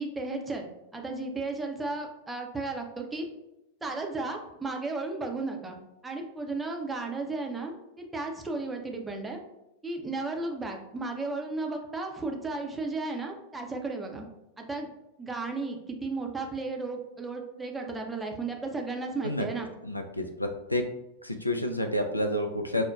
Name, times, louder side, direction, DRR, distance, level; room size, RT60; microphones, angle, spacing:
voice 1, 0.0-3.3 3.8-5.8 6.0-9.4 9.8-14.3 14.6-14.9 15.2-19.7, right 3 dB, 10° right, 2 dB, 0.5 m, -34 dB
voice 2, 19.8-20.8 21.2-22.8, left 1 dB, 85° left, 5 dB, 0.3 m, -29 dB
5.1 x 2.1 x 2.3 m, 0.89 s
figure-of-eight pair, 90°, 0 cm